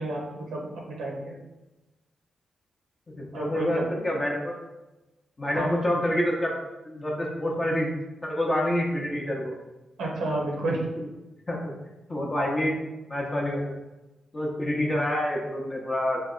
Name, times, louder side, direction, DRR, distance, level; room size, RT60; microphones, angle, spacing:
voice 1, 0.0-1.4 3.3-3.8 5.5-5.7 10.0-10.9, right 2 dB, 85° right, -1 dB, 0.7 m, -30 dB
voice 2, 3.2-4.6 5.4-6.5 6.8-7.9 8.2-9.5 11.5-11.6 12.1-12.7 13.1-13.8 14.3-16.2, left 1 dB, 35° left, -2 dB, 0.7 m, -27 dB
3.3 x 2.1 x 3.7 m, 1.0 s
supercardioid pair, 55°, 0 cm